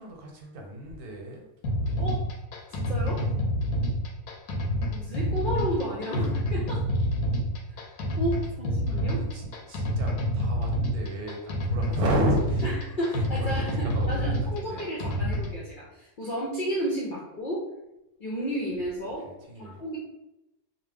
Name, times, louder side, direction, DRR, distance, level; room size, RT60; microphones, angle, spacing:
voice 1, 0.0-1.5 1.8-2.2 3.7-4.0 9.0-12.7 13.2-14.9 19.2-19.8, right 1 dB, 90° right, 0 dB, 1.2 m, -33 dB
sound 1, 1.6-15.6, equal, 85° left, 1.1 m, -28 dB
voice 2, 2.7-3.3 4.9-6.9 7.7-7.9 8.2-9.2 12.6-17.7 18.2-19.3 19.6-20.0, equal, 55° left, -5 dB, 0.5 m, -32 dB
2.8 x 2.2 x 3.3 m, 0.93 s
omnidirectional pair, 1.5 m